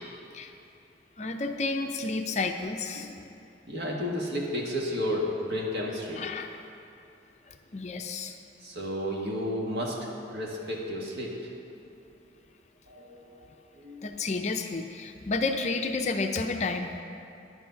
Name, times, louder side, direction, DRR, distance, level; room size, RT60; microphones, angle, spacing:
voice 1, 1.2-3.1 6.2-6.5 7.5-8.4 14.0-16.9, left 3 dB, 40° left, 5 dB, 0.5 m, -31 dB
voice 2, 3.7-6.2 8.6-10.0 10.3-11.4 12.9-13.5 13.8-14.1, left 1 dB, 65° right, -2 dB, 1.7 m, -32 dB
10.0 x 8.0 x 5.7 m, 2.7 s
head